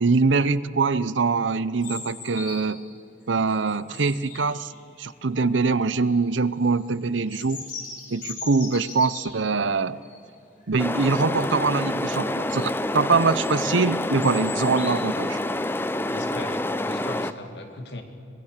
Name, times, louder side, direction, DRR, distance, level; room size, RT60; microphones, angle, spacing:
voice 1, 0.0-2.8 3.3-4.7 5.0-7.6 8.1-10.0 10.7-15.4, right 4 dB, 80° right, 16 dB, 0.8 m, -23 dB
sound 1, 1.8-2.9 3.4-5.1 5.7-6.2 6.6-9.5 10.0-10.2 10.6-10.7 11.1-11.4 12.0-12.6 13.1-15.0, left 4 dB, 45° left, 4.0 m, -40 dB
sound 2, 10.8-17.3, left 1 dB, 10° left, 0.5 m, -27 dB
voice 2, 16.1-18.0, left 2 dB, 60° left, 5 dB, 2.5 m, -38 dB
24.5 x 20.5 x 6.7 m, 2.7 s
head